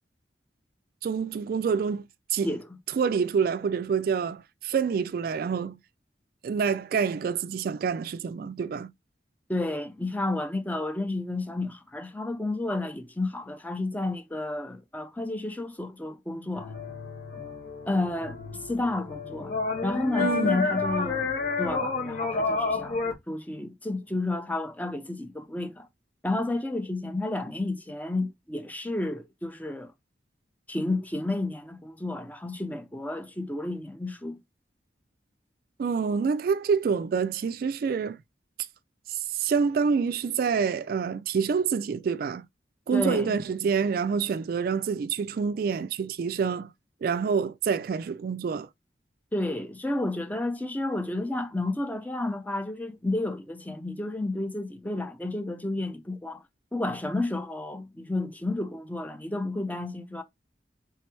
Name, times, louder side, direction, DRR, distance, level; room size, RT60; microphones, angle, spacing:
voice 1, 1.0-2.0 2.3-2.5 2.9-5.8 6.4-8.9 20.2-20.6 35.8-38.2 39.1-42.5 42.9-46.7 47.0-48.7, right 6 dB, 55° right, 0.3 m, -27 dB
voice 2, 9.5-16.7 17.9-18.4 18.7-19.5 19.8-21.3 21.6-25.9 26.2-29.9 30.7-34.4 42.9-43.3 49.3-56.4 56.7-60.2, left 2 dB, 10° left, 0.6 m, -31 dB
sound 1, 16.6-23.1, left 4 dB, 55° left, 1.4 m, -30 dB
3.4 x 3.2 x 4.4 m
head